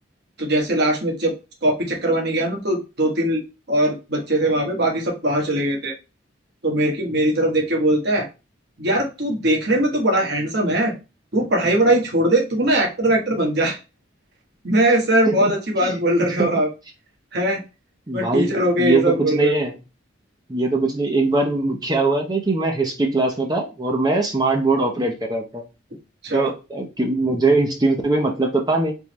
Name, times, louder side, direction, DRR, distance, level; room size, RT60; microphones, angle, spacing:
voice 1, 0.4-1.3 1.6-3.4 3.7-5.9 6.6-8.3 8.8-10.9 11.3-13.8 14.6-16.7 17.3-17.6 18.1-19.6 26.2-26.5, right 1 dB, 55° right, 1 dB, 1.2 m, -20 dB
voice 2, 18.1-19.8 20.5-25.6 26.3-28.9, right 2 dB, 20° right, 2 dB, 0.6 m, -21 dB
3.6 x 3.1 x 3.0 m, 0.29 s
head